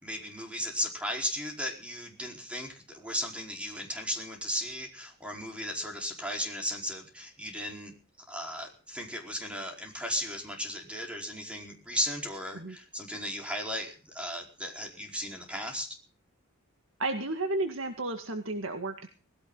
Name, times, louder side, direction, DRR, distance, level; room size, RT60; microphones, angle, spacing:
voice 1, 0.0-7.9 8.3-15.9, equal, 5° right, 1 dB, 4.6 m, -36 dB
voice 2, 17.0-19.1, right 2 dB, 70° right, 5 dB, 2.0 m, -32 dB
20.0 x 16.5 x 4.0 m, 0.38 s
head